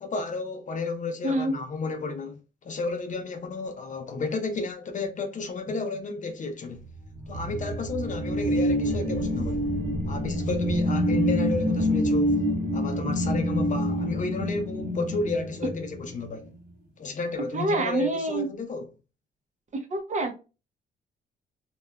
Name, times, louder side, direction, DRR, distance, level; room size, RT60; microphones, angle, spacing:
voice 1, 0.0-6.9 7.3-9.7 10.1-12.4 12.7-16.5 17.0-18.9, left 3 dB, 45° left, 0.6 m, -32 dB
voice 2, 1.2-1.5 17.5-18.5 19.9-20.3, right 2 dB, 45° right, 0.7 m, -26 dB
sound 1, 7.0-16.3, equal, 85° right, 1.1 m, -27 dB
2.8 x 2.3 x 2.2 m
cardioid pair, 85°, 18 cm